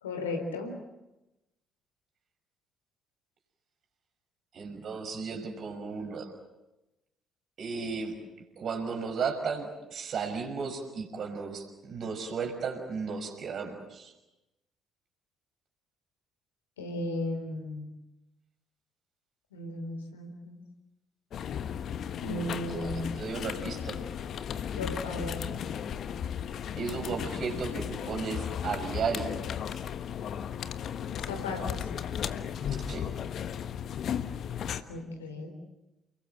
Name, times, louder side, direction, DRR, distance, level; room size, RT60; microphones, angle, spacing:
voice 1, 0.0-0.7 16.8-17.9 19.5-20.6 22.2-23.1 24.8-25.5 31.2-31.9 34.9-35.5, left 1 dB, 80° left, 4 dB, 3.9 m, -35 dB
voice 2, 4.5-6.3 7.6-8.1 8.6-14.1 22.7-22.9 23.2-24.0 26.8-29.5 32.7-33.1, right 5 dB, 50° right, 4 dB, 6.0 m, -34 dB
sound 1, 21.3-34.8, left 8 dB, 55° left, 1.3 m, -35 dB
29.5 x 22.5 x 7.9 m, 0.97 s
figure-of-eight pair, 45°, 0 cm